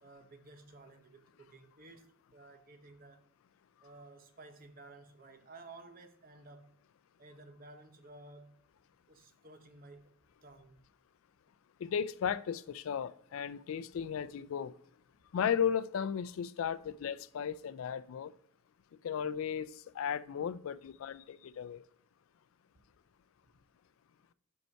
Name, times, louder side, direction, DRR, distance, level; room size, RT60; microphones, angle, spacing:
voice 1, 0.0-3.2 3.8-6.7 7.2-8.5 9.1-10.1 10.4-10.8, right 2 dB, 40° right, 0.7 m, -54 dB
voice 2, 11.8-14.7 15.3-18.3 19.0-19.7 19.9-21.8, left 8 dB, 70° left, 0.3 m, -35 dB
5.6 x 5.3 x 4.5 m
head